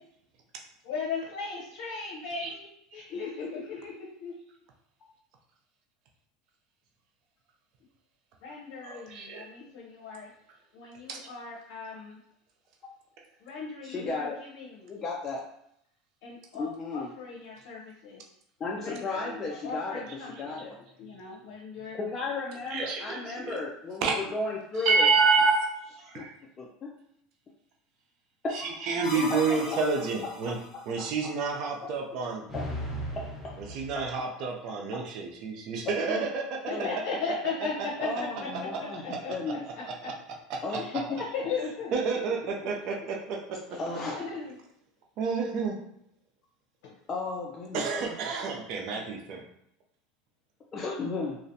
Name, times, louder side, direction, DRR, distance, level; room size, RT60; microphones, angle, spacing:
voice 1, 0.8-3.9 4.2-4.3 8.4-10.3 10.7-12.2 13.4-14.3 14.5-15.0 16.2-18.2 18.8-20.7 21.0-22.0 29.1-29.8 36.7-38.1 38.4-38.5 39.0-39.3 39.7-39.8 40.8-42.9 43.7-44.5 46.8-46.9, left 4 dB, 70° left, -5 dB, 0.7 m, -37 dB
voice 2, 8.8-9.4 11.1-11.3 22.7-23.6 24.0-24.1 24.8-25.7 26.0-26.3 28.5-30.6 30.9-32.4 33.7-36.6 39.1-39.2 39.8-40.1 40.5-40.8 41.9-43.6 45.2-45.8 47.7-49.4, right 4 dB, 55° right, 1 dB, 0.4 m, -29 dB
voice 3, 13.8-14.4 14.9-15.4 16.5-17.1 18.6-20.7 21.9-25.1 26.1-26.3 26.6-26.9 28.4-29.9 30.4-30.5 31.0-31.1 32.5-32.6 33.1-33.3 36.1-36.3 36.7-36.9 38.0-39.7 40.6-41.2 43.8-44.3 47.1-48.2 50.7-51.4, left 3 dB, 30° left, -3 dB, 0.4 m, -34 dB
sound 1, 29.0-30.7 32.5-34.1, left 1 dB, 10° left, 0.9 m, -38 dB
2.4 x 2.1 x 2.6 m, 0.74 s
supercardioid pair, 115°, 0 cm